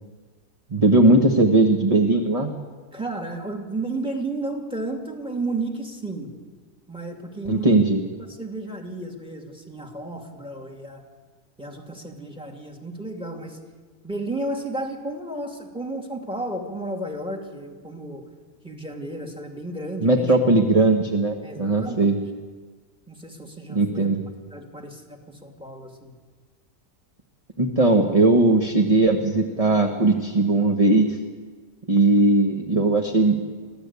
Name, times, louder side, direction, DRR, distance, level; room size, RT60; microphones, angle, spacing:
voice 1, 0.7-2.5 7.5-8.0 20.0-22.1 23.7-24.2 27.6-31.2 31.9-33.4, right 2 dB, 25° right, 2 dB, 1.4 m, -19 dB
voice 2, 2.9-6.3 6.9-7.8 8.3-11.0 11.6-13.6 14.0-18.3 18.6-20.4 21.4-22.1 23.1-24.1 24.5-26.1, right 2 dB, 5° right, 2 dB, 2.5 m, -33 dB
24.5 x 16.0 x 8.4 m, 1.4 s
omnidirectional pair, 1.6 m